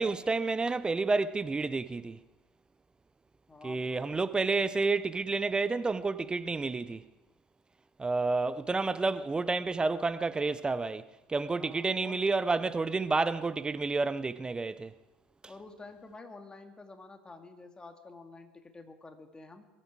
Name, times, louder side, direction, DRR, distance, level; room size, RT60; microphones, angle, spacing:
voice 1, 0.0-2.2 3.6-7.0 8.0-14.9, right 3 dB, 15° right, 0.6 m, -30 dB
voice 2, 3.5-4.0 11.6-12.2 15.5-19.7, left 3 dB, 15° left, 2.1 m, -49 dB
22.0 x 13.0 x 4.7 m
hypercardioid pair, 70°, 5 cm